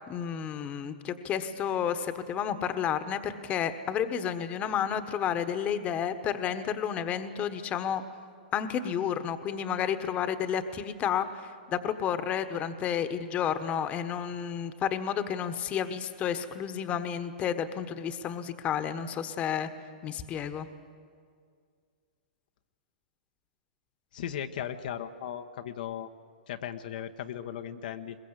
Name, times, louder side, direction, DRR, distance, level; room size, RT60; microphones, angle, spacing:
voice 1, 0.1-8.0 8.5-19.7 20.0-20.7, left 8 dB, 30° left, 10 dB, 1.3 m, -31 dB
voice 2, 24.1-26.1 26.5-28.2, left 9 dB, 65° left, 7 dB, 1.1 m, -37 dB
22.0 x 20.5 x 8.2 m, 2.1 s
hypercardioid pair, 125°, 5 cm